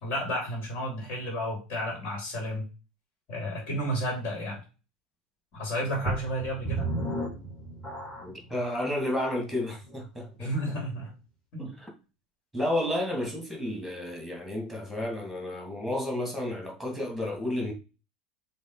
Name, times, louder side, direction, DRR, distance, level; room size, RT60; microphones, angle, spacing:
voice 1, 0.0-2.7 3.3-4.6 5.5-6.9 10.4-11.1 11.5-11.7, equal, 40° left, 3.5 m, -32 dB
sound 1, 6.0-8.5 9.1-9.2 9.8-9.9, right 2 dB, 20° left, 3.2 m, -33 dB
voice 2, 8.2-10.5 11.6-11.9 12.5-17.7, left 1 dB, ahead, 2.6 m, -31 dB
7.2 x 3.4 x 4.1 m
figure-of-eight pair, 80°, 5 cm